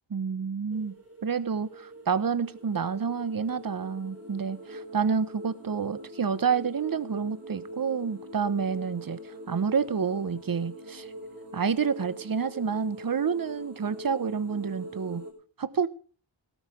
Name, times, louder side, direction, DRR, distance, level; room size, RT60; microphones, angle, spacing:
voice 1, 0.1-0.9 1.2-11.1 11.5-15.3 15.6-15.9, right 6 dB, 50° right, 1.1 m, -29 dB
sound 1, 0.7-15.3, right 1 dB, 30° right, 5.2 m, -43 dB
18.0 x 12.5 x 3.4 m
wide cardioid pair, 130°, 46 cm